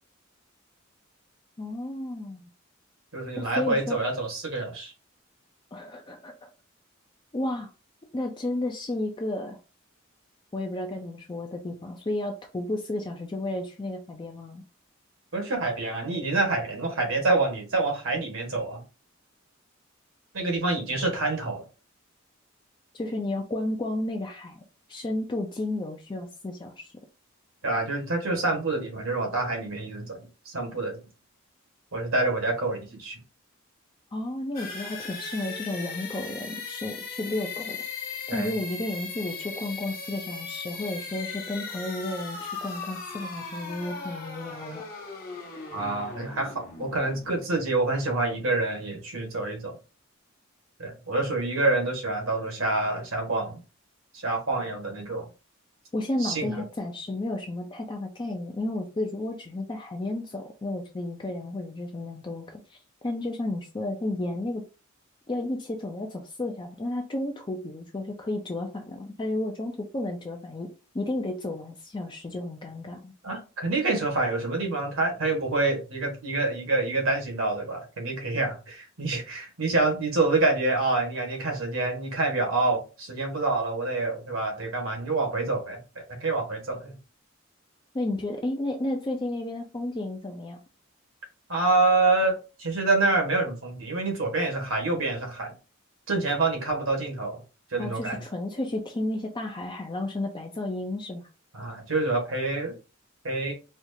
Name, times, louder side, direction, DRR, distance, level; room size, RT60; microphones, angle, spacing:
voice 1, 1.6-2.4 3.4-4.0 5.7-6.5 7.3-7.7 8.1-9.6 10.5-14.6 22.9-24.6 24.9-26.9 34.1-37.8 38.3-44.8 55.9-62.8 63.0-64.6 65.3-70.7 70.9-73.1 87.9-90.6 97.8-101.3, left 2 dB, 20° left, 0.4 m, -32 dB
voice 2, 3.1-4.9 15.3-18.8 20.3-21.6 27.6-30.2 30.4-31.0 31.9-33.2 38.3-38.5 45.7-49.8 50.8-53.6 54.1-55.3 56.2-56.5 73.2-86.9 91.5-95.5 96.1-97.4 97.7-98.2 101.5-102.7 103.2-103.5, right 2 dB, 75° right, 1.4 m, -27 dB
sound 1, 34.5-48.2, left 4 dB, 45° left, 1.0 m, -38 dB
4.3 x 2.4 x 2.7 m
head